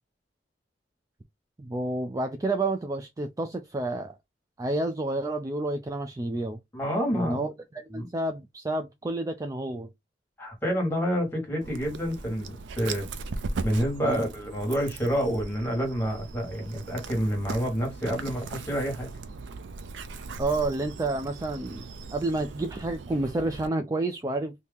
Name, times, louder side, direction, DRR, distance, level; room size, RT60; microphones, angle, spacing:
voice 1, 1.6-4.2 4.6-6.6 7.1-9.9 14.0-14.2 20.4-21.9 22.1-24.5, right 2 dB, 20° right, 0.3 m, -30 dB
voice 2, 6.7-7.4 7.9-8.1 10.4-13.1 13.6-19.1, equal, 10° left, 1.6 m, -28 dB
Dog, 11.6-23.7, right 3 dB, 80° right, 0.5 m, -39 dB
2.9 x 2.7 x 3.5 m
head